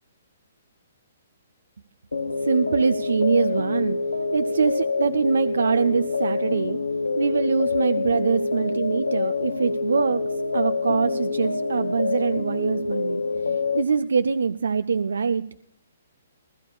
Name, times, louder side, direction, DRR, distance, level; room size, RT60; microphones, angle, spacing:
sound 1, 2.1-13.8, left 4 dB, 90° left, 1.0 m, -26 dB
voice 1, 2.4-4.0 4.3-6.8 7.2-10.2 10.5-15.4, right 5 dB, 75° right, 11 dB, 0.6 m, -23 dB
20.5 x 13.5 x 2.3 m, 0.70 s
figure-of-eight pair, 130°, 0 cm